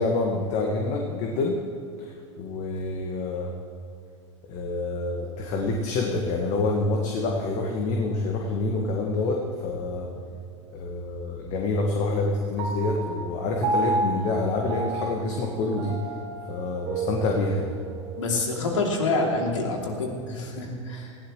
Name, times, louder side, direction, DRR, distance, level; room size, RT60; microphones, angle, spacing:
voice 1, 0.0-1.6 2.4-3.5 4.5-10.1 10.7-16.0 16.5-17.7, left 2 dB, 45° left, 0 dB, 1.8 m, -27 dB
Piano, 12.6-19.3, right 3 dB, 50° right, 2.4 m, -32 dB
voice 2, 18.2-21.2, left 3 dB, 75° left, 0 dB, 2.9 m, -27 dB
19.5 x 15.5 x 3.2 m, 2.4 s
figure-of-eight pair, 90°, 16 cm